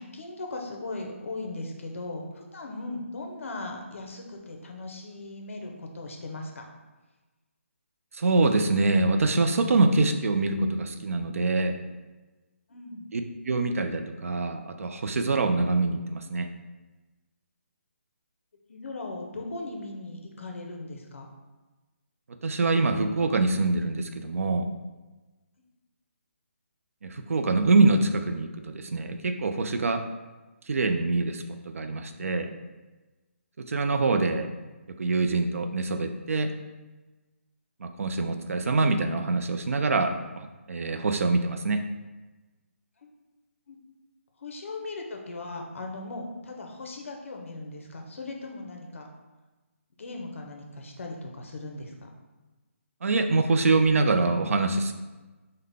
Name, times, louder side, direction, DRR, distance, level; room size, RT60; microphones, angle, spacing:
voice 1, 0.0-6.7 12.7-13.1 18.7-21.3 43.0-43.1 43.7-43.8 44.4-49.1 50.0-52.1, left 2 dB, 65° left, 2 dB, 0.7 m, -38 dB
voice 2, 8.2-11.7 13.1-16.5 22.4-24.6 27.0-30.0 30.7-31.4 31.7-32.5 33.7-34.5 35.0-36.5 37.8-40.1 40.7-41.8 53.0-54.9, right 3 dB, 80° right, 6 dB, 0.4 m, -24 dB
3.8 x 2.1 x 3.4 m, 1.2 s
hypercardioid pair, 170°, 7 cm